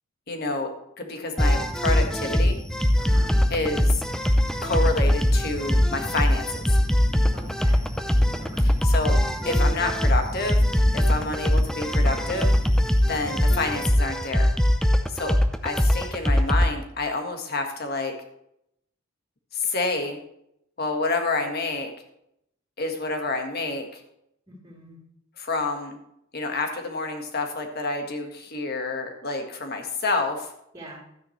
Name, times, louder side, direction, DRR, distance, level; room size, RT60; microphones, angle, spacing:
voice 1, 0.3-2.6 3.5-3.9 4.6-6.7 8.6-9.2 9.4-10.6 10.9-12.6 13.1-14.5 15.1-18.1 19.5-20.2 20.8-21.9 22.8-24.0 25.4-26.0 26.3-30.5, left 3 dB, 50° left, 4 dB, 1.6 m, -28 dB
sound 1, 1.4-16.7, left 1 dB, 5° left, 0.5 m, -21 dB
voice 2, 3.0-3.4 7.3-7.8 8.4-8.7 24.5-25.0 30.7-31.0, right 1 dB, 20° right, -4 dB, 3.3 m, -44 dB
12.5 x 9.5 x 3.2 m, 0.77 s
head